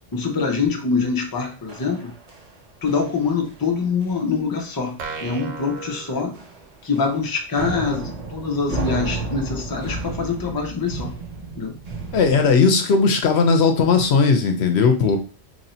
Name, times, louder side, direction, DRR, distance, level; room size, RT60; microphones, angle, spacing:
voice 1, 0.1-2.1 2.8-6.3 6.8-11.1 11.6-11.7, left 5 dB, 25° left, 2 dB, 0.6 m, -24 dB
sound 1, 1.7-2.6 2.9-3.2 3.4-3.7 4.0-4.2 4.6-4.7 5.2-5.5 5.8-5.9 6.3-7.2 7.5-12.5, right 3 dB, 40° right, 0.7 m, -32 dB
sound 2, 5.0-6.9, right 5 dB, 75° right, 0.9 m, -36 dB
voice 2, 12.1-15.2, left 5 dB, 70° left, 6 dB, 0.9 m, -17 dB
3.1 x 2.7 x 4.2 m, 0.36 s
omnidirectional pair, 1.1 m